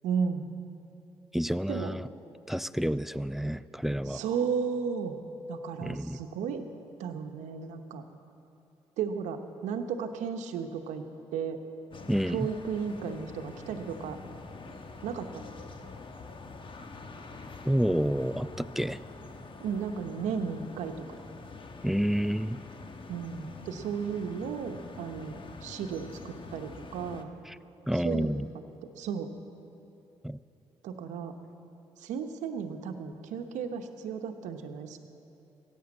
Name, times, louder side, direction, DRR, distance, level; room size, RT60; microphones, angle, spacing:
voice 1, 0.0-0.5 1.7-1.9 4.1-5.2 5.5-6.7 7.0-8.0 9.0-11.0 11.3-11.6 12.3-14.2 15.0-15.3 19.6-20.9 23.1-27.3 27.9-28.4 29.0-29.3 30.8-31.3 32.0-35.0, right 6 dB, 80° right, 7 dB, 0.9 m, -34 dB
voice 2, 1.3-2.1 2.5-4.2 5.8-6.2 12.1-12.5 17.7-19.0 21.8-22.6 27.9-28.5 30.2-30.4, equal, ahead, 17 dB, 0.4 m, -29 dB
sound 1, 11.9-27.2, left 3 dB, 45° left, 1.1 m, -46 dB
14.5 x 9.1 x 7.5 m, 2.9 s
supercardioid pair, 50°, 12 cm